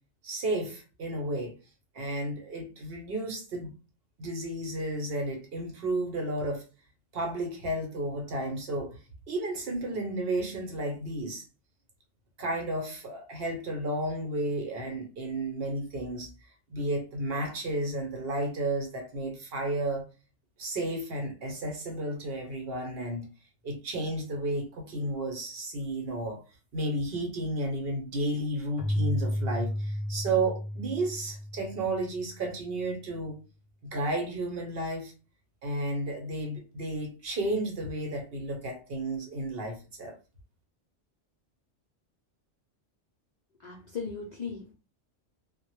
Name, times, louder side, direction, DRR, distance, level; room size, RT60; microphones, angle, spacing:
voice 1, 0.2-1.5 1.9-3.7 4.2-6.6 7.1-9.0 9.3-11.4 12.4-16.3 16.7-20.1 20.6-23.3 23.6-26.4 26.7-33.4 33.8-35.1 35.6-40.2, right 1 dB, 60° right, 0.8 m, -32 dB
Keyboard (musical), 28.8-32.3, equal, 90° left, 0.9 m, -32 dB
voice 2, 43.6-44.7, left 5 dB, 60° left, 0.4 m, -37 dB
2.1 x 2.0 x 2.9 m
omnidirectional pair, 1.3 m